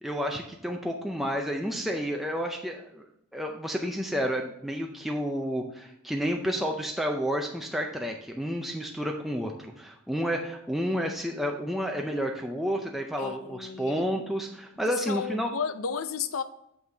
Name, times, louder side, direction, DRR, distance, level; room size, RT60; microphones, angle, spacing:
voice 1, 0.0-3.0 3.3-15.5, equal, ahead, 1 dB, 0.4 m, -30 dB
voice 2, 13.2-14.1 14.9-16.4, left 6 dB, 75° left, 12 dB, 0.5 m, -33 dB
6.4 x 5.6 x 3.9 m, 0.79 s
head